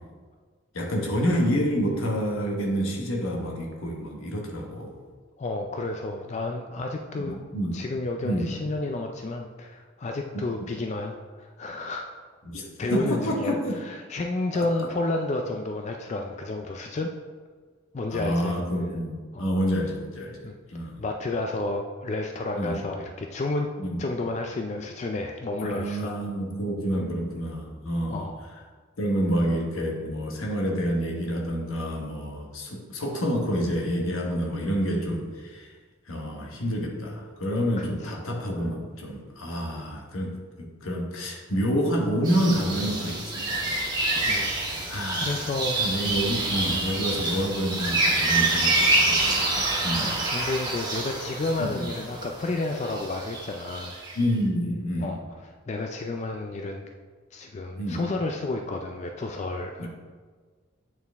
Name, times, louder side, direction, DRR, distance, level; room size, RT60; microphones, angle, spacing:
voice 1, 0.7-4.9 7.2-7.8 8.2-8.5 12.4-13.8 14.5-14.7 18.1-21.0 22.5-22.8 23.8-24.0 25.6-28.3 29.0-35.7 36.1-43.9 44.9-50.2 51.6-51.9 54.1-55.2 57.8-58.0 59.8-59.9, equal, 85° left, 0 dB, 1.2 m, -28 dB
voice 2, 5.4-7.4 7.7-12.1 12.8-13.6 13.9-17.1 17.9-18.5 19.3-19.4 20.4-20.6 21.0-23.7 24.0-26.1 28.1-28.4 37.8-38.1 44.2-44.6 45.2-45.8 50.0-54.0 55.0-55.2 55.7-56.9 57.3-59.9, left 2 dB, 35° left, 3 dB, 0.3 m, -31 dB
sound 1, 42.2-54.2, right 2 dB, 20° right, 1.2 m, -27 dB
8.6 x 4.5 x 3.5 m, 1.5 s
head